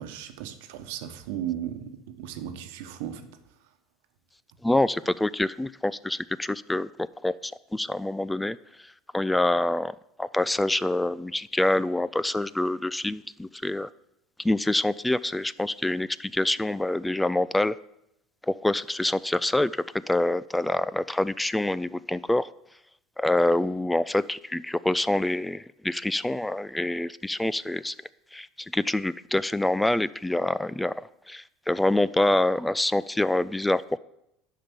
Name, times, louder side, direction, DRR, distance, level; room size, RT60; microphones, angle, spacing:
voice 1, 0.0-3.3, right 10 dB, 80° right, 1.1 m, -36 dB
voice 2, 4.6-8.6 9.1-13.9 14.4-17.8 18.5-22.5 23.2-27.9 28.3-34.0, left 1 dB, 10° left, 0.3 m, -26 dB
10.5 x 5.7 x 6.8 m
supercardioid pair, 95°, 0 cm